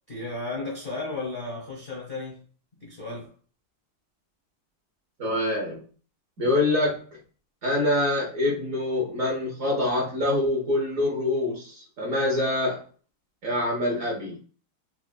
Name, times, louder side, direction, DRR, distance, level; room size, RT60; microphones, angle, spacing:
voice 1, 0.1-2.5 2.8-3.3, left 2 dB, 55° left, 0.5 m, -34 dB
voice 2, 5.2-5.8 6.4-7.1 7.6-12.8 13.4-14.4, left 1 dB, 55° right, 1.0 m, -25 dB
4.6 x 2.0 x 2.3 m
omnidirectional pair, 2.3 m